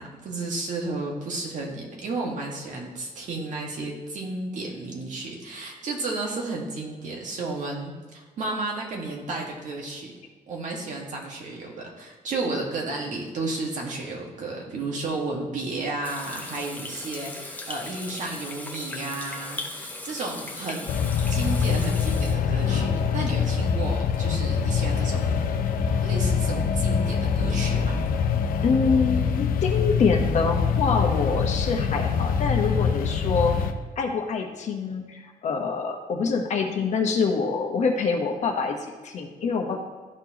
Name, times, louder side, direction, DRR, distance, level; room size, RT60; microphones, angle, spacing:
voice 1, 0.0-10.1 10.5-21.0 21.3-25.3 26.0-28.0, right 3 dB, 55° right, -1 dB, 1.7 m, -32 dB
Water tap faucet / Sink (filling or washing), 16.0-22.4, left 2 dB, 10° left, 0.9 m, -38 dB
sound 1, 20.9-33.7, left 6 dB, 70° left, 0.6 m, -24 dB
voice 2, 28.6-33.7 34.0-39.8, left 5 dB, 50° left, 2 dB, 1.1 m, -25 dB
13.0 x 4.5 x 2.9 m, 1.4 s
cardioid pair, 155°, 15 cm